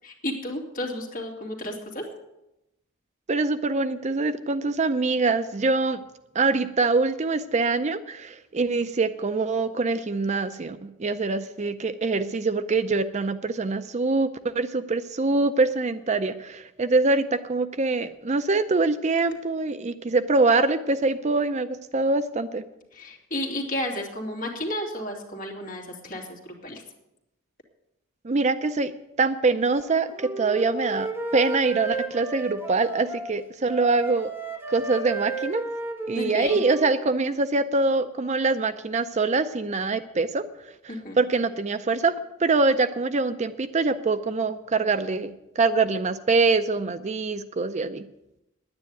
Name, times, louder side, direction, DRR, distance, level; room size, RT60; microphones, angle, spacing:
voice 1, 0.0-2.0 22.9-26.8 36.1-36.6 40.9-41.2, left 1 dB, 40° left, 0 dB, 2.7 m, -32 dB
voice 2, 3.3-6.0 6.3-22.6 28.2-28.9 29.2-34.3 34.7-35.6 36.1-40.4 40.8-42.1 42.4-48.1, right 3 dB, 35° right, 11 dB, 0.5 m, -24 dB
Wind instrument woodwind instrument, 29.7-33.3 33.7-37.3, right 2 dB, 10° right, 1.5 m, -34 dB
10.0 x 9.7 x 9.0 m, 0.90 s
head